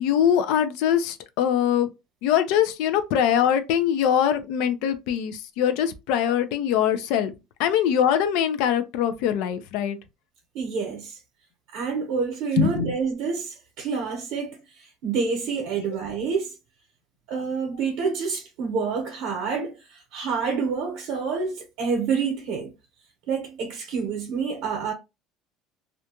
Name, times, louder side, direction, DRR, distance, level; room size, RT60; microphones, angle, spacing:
voice 1, 0.0-1.9 2.2-7.3 7.6-10.0 12.6-13.0 15.8-16.0, left 9 dB, 75° left, 0.4 m, -23 dB
voice 2, 10.5-11.2 11.7-14.6 15.0-16.5 17.3-19.8 20.1-22.7 23.3-24.9, right 5 dB, 70° right, 0.8 m, -27 dB
2.5 x 2.2 x 2.8 m
cardioid pair, 155°, 0 cm